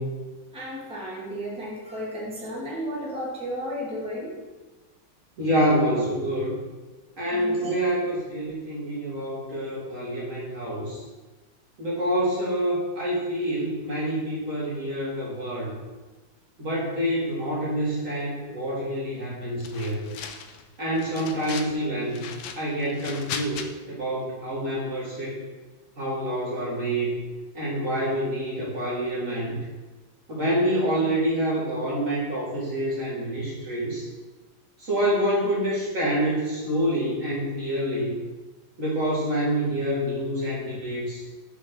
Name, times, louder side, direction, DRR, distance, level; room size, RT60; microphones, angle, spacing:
voice 1, 0.5-4.4 7.3-7.7, equal, 5° right, -6 dB, 1.7 m, -33 dB
voice 2, 5.4-6.5 7.2-11.0 11.8-15.7 16.6-20.1 20.8-22.2 22.6-25.4 26.0-27.2 27.5-29.6 30.3-34.1 34.8-38.1 38.8-41.2, right 1 dB, 45° right, -6 dB, 1.8 m, -27 dB
sound 1, 19.6-20.6 21.0-21.8 22.1-23.7, left 7 dB, 80° left, 1.4 m, -37 dB
5.4 x 4.5 x 6.1 m, 1.3 s
omnidirectional pair, 2.1 m